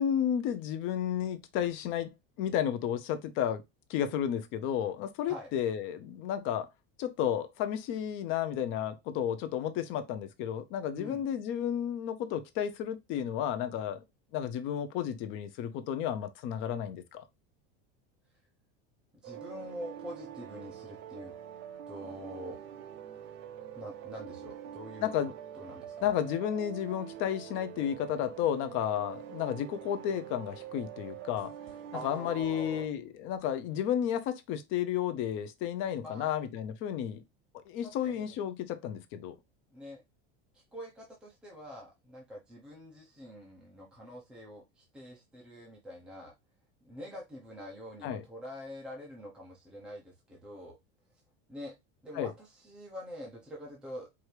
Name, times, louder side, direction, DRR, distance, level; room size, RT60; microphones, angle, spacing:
voice 1, 0.0-3.6 3.9-6.7 7.0-14.0 14.3-17.2 25.0-25.3 26.0-31.5 32.0-37.2 37.7-39.4 48.0-48.2 52.1-52.3, left 9 dB, 40° left, 0.6 m, -32 dB
voice 2, 10.9-11.3 19.2-21.3 21.9-22.6 23.7-25.1 25.5-26.1 31.9-32.9 35.9-36.4 37.8-38.4 39.7-40.0 40.5-46.3 46.8-50.7 51.5-51.7 52.0-54.1, equal, 5° right, 0.7 m, -45 dB
sound 1, 19.2-32.9, right 10 dB, 40° right, 0.6 m, -45 dB
4.6 x 2.7 x 3.2 m
cardioid pair, 170°, 29 cm